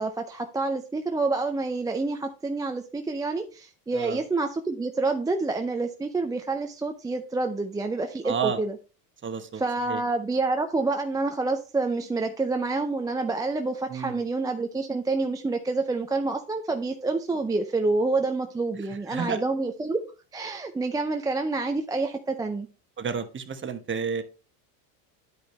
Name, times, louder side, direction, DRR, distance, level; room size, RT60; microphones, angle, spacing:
voice 1, 0.0-8.8 9.6-20.0 20.3-22.7, right 3 dB, 10° right, 4 dB, 0.5 m, -28 dB
voice 2, 8.2-8.6 9.2-9.6 9.9-10.0 13.9-14.2 19.1-19.4 23.0-24.2, right 6 dB, 25° right, 9 dB, 1.1 m, -30 dB
11.0 x 5.0 x 3.1 m, 0.35 s
hypercardioid pair, 95°, 50 cm